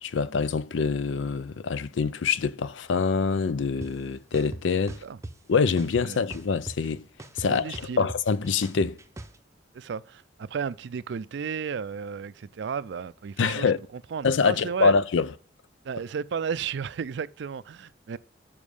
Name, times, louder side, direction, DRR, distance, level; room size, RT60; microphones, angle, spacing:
voice 1, 0.0-5.0 5.5-7.0 7.4-9.0 13.4-13.8 14.2-15.3, left 5 dB, 80° left, 0.5 m, -25 dB
sound 1, 3.8-3.9 4.3-5.3 5.8-6.9 7.2-9.4, right 1 dB, 15° right, 0.6 m, -39 dB
voice 2, 7.4-8.1 9.7-14.9 15.8-18.2, right 6 dB, 65° right, 0.4 m, -33 dB
7.3 x 5.2 x 4.8 m
head